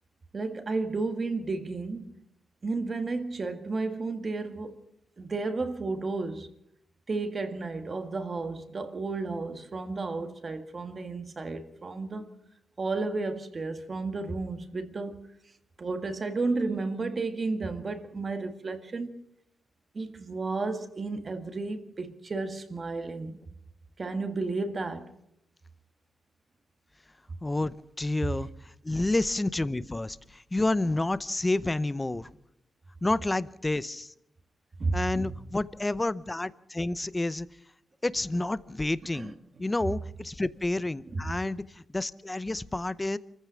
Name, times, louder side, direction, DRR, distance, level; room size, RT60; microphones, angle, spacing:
voice 1, 0.3-2.1 2.6-4.8 5.2-6.5 7.1-12.3 12.8-15.2 15.8-19.1 19.9-23.4 24.0-25.1 34.8-35.3 39.1-39.3 41.1-41.2, right 3 dB, 30° right, 1.8 m, -32 dB
voice 2, 27.4-32.3 33.0-34.1 34.9-37.5 38.0-39.3 39.6-43.2, left 2 dB, 15° left, 0.7 m, -29 dB
27.5 x 15.0 x 6.3 m
wide cardioid pair, 150°, 0 cm